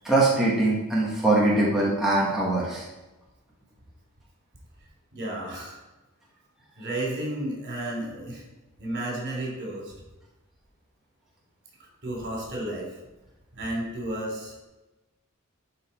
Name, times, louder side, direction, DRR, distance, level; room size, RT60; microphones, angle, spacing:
voice 1, 0.0-2.8, right 2 dB, ahead, -7 dB, 1.5 m, -22 dB
voice 2, 5.1-5.8 6.8-8.4 8.8-10.0 12.0-13.0 13.5-14.5, right 1 dB, 50° right, -2 dB, 3.4 m, -32 dB
11.5 x 5.0 x 4.3 m, 1.1 s
head